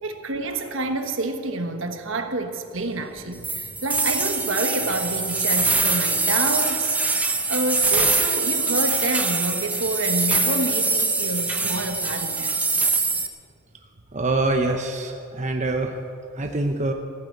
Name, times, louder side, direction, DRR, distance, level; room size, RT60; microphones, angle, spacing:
voice 1, 0.0-7.0 7.5-12.5, right 2 dB, 65° right, 6 dB, 1.3 m, -28 dB
sound 1, 3.4-13.3, right 3 dB, 5° right, 0.6 m, -23 dB
voice 2, 14.1-16.0 16.3-16.9, right 2 dB, 35° right, 3 dB, 0.8 m, -24 dB
15.0 x 9.9 x 8.0 m, 2.4 s
head